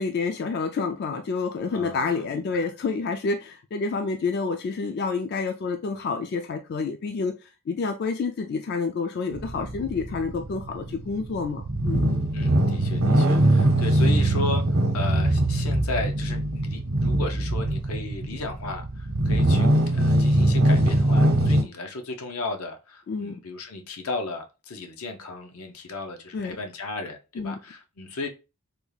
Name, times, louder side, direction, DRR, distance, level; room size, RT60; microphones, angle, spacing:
voice 1, 0.0-12.1 23.1-23.4 26.3-26.6 27.4-27.6, left 4 dB, 50° left, 0.3 m, -29 dB
voice 2, 1.7-2.6 12.3-14.6 14.9-28.3, left 2 dB, 80° left, 0.7 m, -35 dB
sound 1, 9.3-21.6, right 1 dB, 70° right, 0.8 m, -22 dB
3.4 x 2.3 x 3.2 m
head